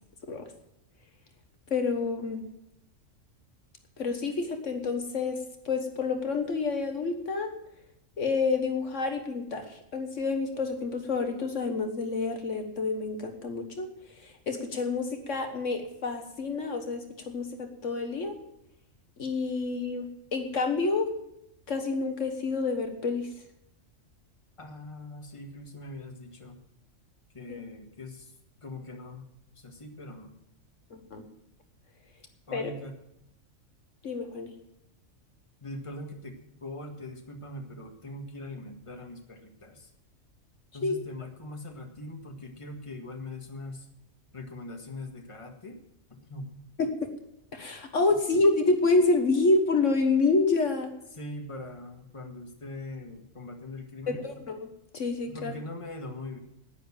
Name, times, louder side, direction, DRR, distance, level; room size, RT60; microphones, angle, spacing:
voice 1, 1.7-2.4 4.0-5.4 5.6-7.5 8.2-13.9 14.2-18.3 19.2-21.1 21.7-23.3 27.5-27.6 31.1-31.2 32.5-32.7 34.0-34.5 40.8-41.0 46.8-46.9 47.5-50.9 54.1-54.7 54.9-55.5, left 3 dB, 65° left, 5 dB, 1.6 m, -28 dB
voice 2, 24.6-26.6 27.3-28.3 28.6-29.3 29.5-30.3 32.5-32.9 35.6-39.9 40.7-43.9 44.3-45.8 46.2-46.5 51.1-54.2 55.3-56.4, left 1 dB, 25° left, 3 dB, 1.8 m, -41 dB
10.5 x 10.0 x 7.3 m, 0.81 s
omnidirectional pair, 1.4 m